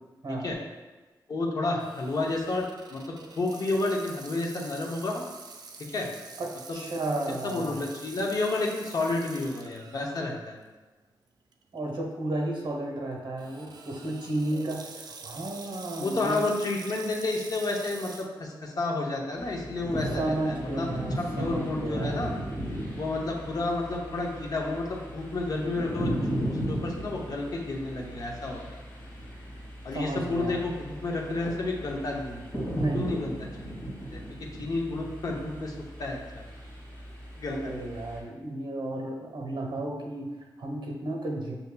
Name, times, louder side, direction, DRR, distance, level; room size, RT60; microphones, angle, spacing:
voice 1, 1.3-2.6 2.9-3.0 3.4-5.2 5.9-6.1 6.7-6.8 7.4-10.6 15.9-20.9 21.2-22.3 23.0-26.1 26.5-28.6 29.8-32.4 32.9-33.3 34.1-34.2 34.6-35.7 36.0-36.2 37.4-37.8, left 2 dB, 50° left, -1 dB, 0.7 m, -30 dB
Water tap faucet / Sink (filling or washing), 1.8-10.2 10.7-10.8 11.5-11.8 13.4-18.3, right 4 dB, 55° right, 0.4 m, -46 dB
voice 2, 6.4-7.8 11.7-16.4 20.1-22.2 29.9-30.6 32.7-33.1 37.5-41.6, right 1 dB, 70° right, 0 dB, 0.9 m, -33 dB
sound 1, 19.4-38.2, right 1 dB, 20° left, 1.3 m, -36 dB
6.6 x 2.7 x 2.2 m, 1.3 s
wide cardioid pair, 145°, 8 cm